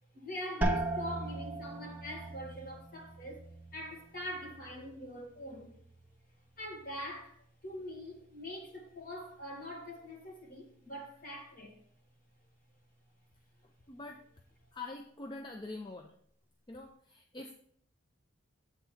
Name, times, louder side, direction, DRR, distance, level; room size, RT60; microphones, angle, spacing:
voice 1, 0.1-3.4 3.7-5.8 6.6-7.4 7.6-11.8, left 1 dB, 45° left, 1.9 m, -43 dB
sound 1, 0.6-6.2 6.6-7.3 7.8-8.2, right 2 dB, 10° right, 0.8 m, -39 dB
voice 2, 13.9-14.2 14.7-16.1 16.7-17.5, left 2 dB, 20° left, 0.4 m, -44 dB
7.9 x 3.7 x 5.7 m
head